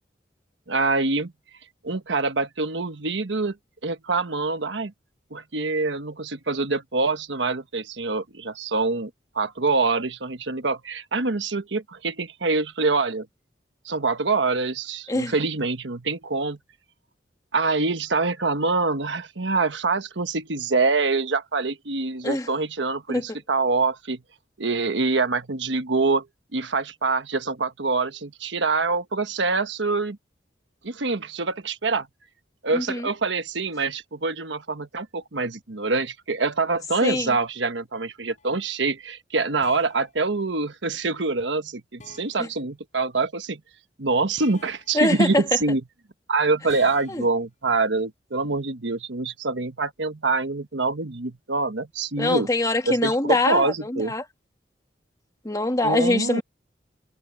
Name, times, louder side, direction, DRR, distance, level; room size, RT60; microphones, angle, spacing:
voice 1, 0.7-1.3 1.8-3.6 3.8-4.9 5.3-9.1 9.3-13.3 13.8-16.6 17.5-24.2 24.6-26.3 26.5-30.2 30.8-32.1 32.6-43.6 44.0-45.8 46.3-52.5 52.9-54.1 55.8-56.4, right 3 dB, 90° right, 1.3 m, -25 dB
voice 2, 32.7-33.1 37.0-37.4 42.4-42.5 44.9-45.4 47.1-47.2 52.2-54.2 55.4-56.4, left 2 dB, 20° left, 1.5 m, -23 dB
sound 1, 38.4-38.6 39.6-40.1 42.0-42.5 44.4-45.0 46.7-47.3, left 4 dB, 45° left, 4.0 m, -48 dB
head